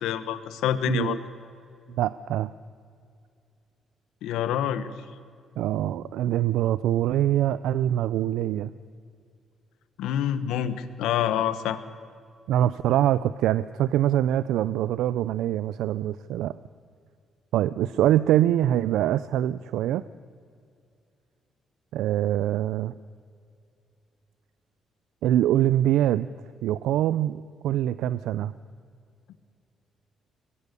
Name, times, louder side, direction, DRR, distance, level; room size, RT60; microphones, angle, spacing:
voice 1, 0.0-1.2 4.2-4.9 10.0-11.8, left 10 dB, 90° left, 13 dB, 1.2 m, -27 dB
voice 2, 0.9-1.2 2.0-2.5 5.6-8.7 12.5-16.5 17.5-20.0 21.9-22.9 25.2-26.3 26.6-28.5, right 12 dB, 85° right, 16 dB, 0.4 m, -24 dB
22.0 x 21.5 x 6.8 m, 2.4 s
cardioid pair, 90°, 0 cm